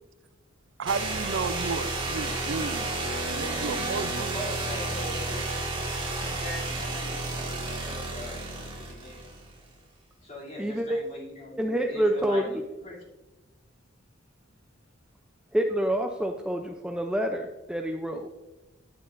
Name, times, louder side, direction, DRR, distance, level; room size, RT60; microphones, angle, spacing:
voice 1, 0.8-2.9 3.3-4.3, right 5 dB, 70° right, 13 dB, 0.4 m, -32 dB
sound 1, 0.9-9.6, right 2 dB, 25° right, 1.8 m, -31 dB
voice 2, 4.3-5.7 6.2-7.4 7.8-9.3 10.2-13.0, left 1 dB, 35° left, -3 dB, 2.8 m, -41 dB
voice 3, 10.6-11.0 11.6-12.6 15.5-18.3, right 1 dB, 5° right, 3 dB, 0.4 m, -27 dB
10.5 x 9.3 x 2.5 m, 1.1 s
head